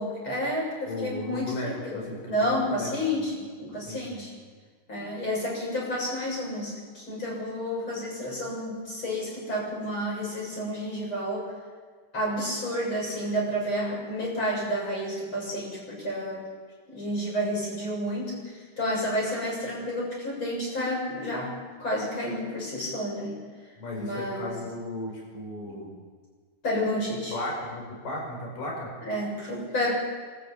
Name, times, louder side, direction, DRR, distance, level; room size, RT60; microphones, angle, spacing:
voice 1, 0.0-4.3 4.9-11.5 12.1-16.5 16.9-23.4 24.0-24.5 26.6-27.4 29.0-30.0, equal, 30° left, -3 dB, 7.8 m, -30 dB
voice 2, 0.8-3.2 3.9-4.3 23.8-25.9 27.3-28.9, left 1 dB, 50° left, -1 dB, 6.8 m, -35 dB
25.5 x 13.5 x 8.8 m, 1.6 s
omnidirectional pair, 4.9 m